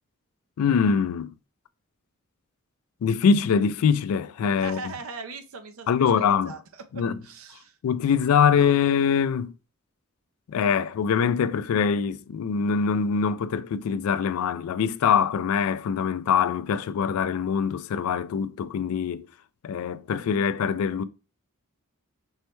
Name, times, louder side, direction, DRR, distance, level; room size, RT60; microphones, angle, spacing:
voice 1, 0.6-1.3 3.0-4.8 5.9-6.5 6.9-7.1 7.8-9.5 10.5-19.3 19.6-21.0, left 6 dB, 80° left, 0.3 m, -23 dB
voice 2, 4.6-6.6 6.9-7.8, right 4 dB, 70° right, 0.6 m, -40 dB
5.3 x 2.2 x 3.0 m
head